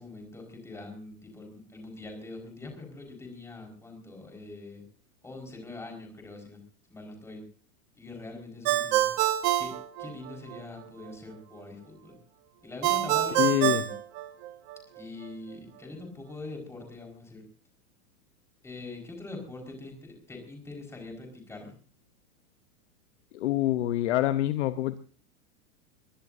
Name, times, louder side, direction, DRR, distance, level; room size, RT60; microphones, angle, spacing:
voice 1, 0.0-4.8 5.2-6.6 6.9-7.4 7.9-9.1 9.6-12.1 12.6-13.9 15.0-17.4 18.6-21.7, left 2 dB, 5° left, 2 dB, 4.8 m, -43 dB
Ringtone, 8.6-10.6 12.8-14.8, right 13 dB, 30° right, 1.0 m, -26 dB
voice 2, 13.4-13.8 23.3-25.0, left 14 dB, 50° left, 10 dB, 0.9 m, -26 dB
22.0 x 21.5 x 2.7 m, 0.40 s
supercardioid pair, 165°, 45 cm